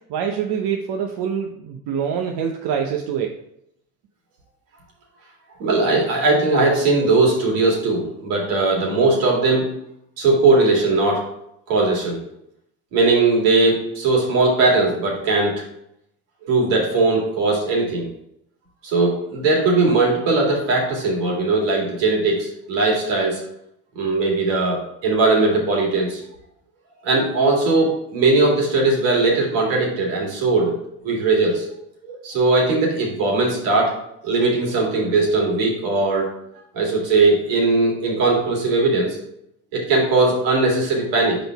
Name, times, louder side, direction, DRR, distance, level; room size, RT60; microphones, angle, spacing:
voice 1, 0.1-3.3, right 7 dB, 60° right, 2 dB, 0.8 m, -25 dB
voice 2, 5.6-9.7 10.2-11.2 11.7-12.2 12.9-15.5 16.4-18.1 18.8-23.4 24.0-26.2 27.0-30.7 31.0-31.7 32.0-33.9 34.2-36.3 36.7-39.2 39.7-41.4, right 3 dB, 75° right, -1 dB, 2.3 m, -19 dB
5.0 x 4.1 x 5.7 m, 0.77 s
hypercardioid pair, 70°, 46 cm